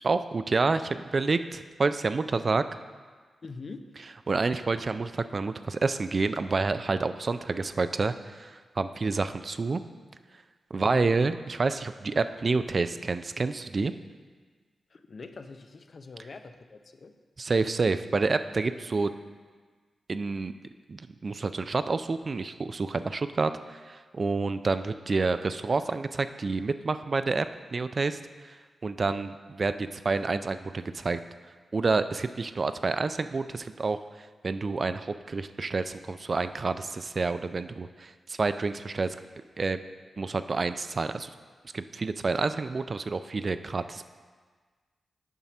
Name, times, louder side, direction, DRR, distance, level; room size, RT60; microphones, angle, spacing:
voice 1, 0.0-2.6 4.3-9.8 10.7-13.9 17.4-19.1 20.1-20.5 20.9-27.5 27.7-28.5 28.8-31.2 31.7-34.0 34.4-39.2 39.6-39.8 40.2-41.3 41.7-44.1, right 4 dB, 50° right, 11 dB, 0.3 m, -28 dB
voice 2, 3.4-3.9 10.8-11.2 14.9-17.1, left 3 dB, 55° left, 8 dB, 0.5 m, -43 dB
7.4 x 4.1 x 5.9 m, 1.5 s
cardioid pair, 55°, 0 cm